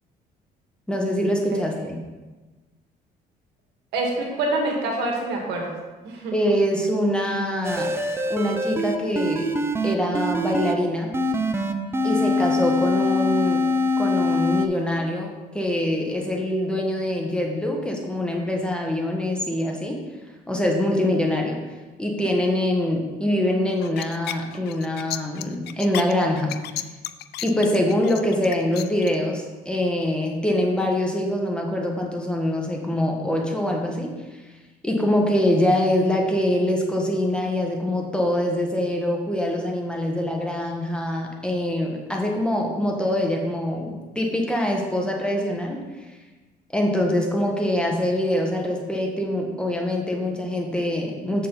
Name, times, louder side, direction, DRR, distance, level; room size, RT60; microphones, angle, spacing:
voice 1, 0.9-2.0 6.3-7.9 8.3-9.5 9.8-11.1 12.0-13.6 14.0-20.0 20.5-21.6 22.0-26.5 27.4-34.1 34.4-34.6 34.8-46.2 46.7-51.5, left 1 dB, 5° left, 0 dB, 1.3 m, -24 dB
voice 2, 1.5-1.9 3.9-5.8 6.0-6.4, right 2 dB, 85° right, 0 dB, 1.9 m, -26 dB
sound 1, 7.6-10.7 11.1-14.7, left 2 dB, 15° right, 0.6 m, -23 dB
sound 2, 23.8-29.1, left 14 dB, 75° left, 0.4 m, -33 dB
7.5 x 6.7 x 4.0 m, 1.2 s
cardioid pair, 110°, 17 cm